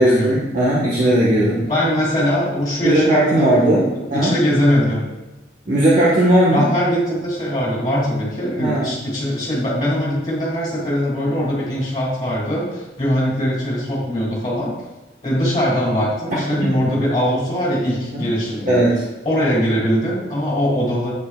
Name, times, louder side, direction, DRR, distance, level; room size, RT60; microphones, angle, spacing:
voice 1, 0.0-1.6 2.8-4.3 5.6-6.6 8.6-8.9 16.6-16.9 18.1-18.3 18.7-19.0, right 1 dB, 45° right, -6 dB, 1.5 m, -17 dB
voice 2, 1.6-3.5 3.7-5.0 6.5-14.8 15.2-18.8 19.2-21.1, equal, 25° left, -5 dB, 3.1 m, -21 dB
9.8 x 8.3 x 2.5 m, 1.1 s
head